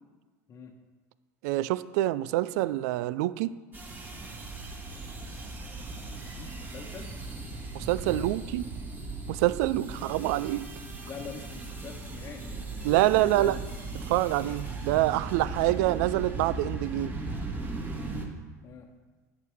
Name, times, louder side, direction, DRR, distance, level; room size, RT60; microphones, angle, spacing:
voice 1, 1.4-3.5 7.7-8.6 9.3-10.7 12.8-13.6 13.9-17.1, right 16 dB, 70° right, 17 dB, 0.4 m, -26 dB
sound 1, 3.7-18.3, right 3 dB, 20° right, 1.9 m, -38 dB
voice 2, 6.0-7.1 8.1-8.3 11.1-13.6 18.6-18.9, left 6 dB, 35° left, 0 dB, 1.1 m, -44 dB
11.0 x 8.6 x 3.5 m, 1.3 s
hypercardioid pair, 95°, 9 cm